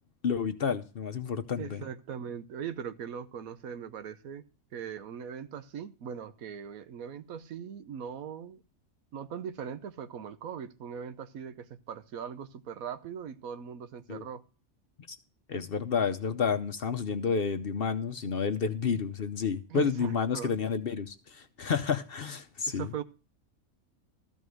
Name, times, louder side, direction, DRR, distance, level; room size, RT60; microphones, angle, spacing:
voice 1, 0.2-1.8 14.1-14.2 15.1-15.2 15.5-22.9, left 6 dB, 50° left, 0.8 m, -30 dB
voice 2, 1.6-4.4 4.7-8.6 9.1-14.4 19.7-20.5 22.7-23.0, right 8 dB, 80° right, 1.2 m, -40 dB
13.5 x 5.3 x 6.3 m
omnidirectional pair, 1.5 m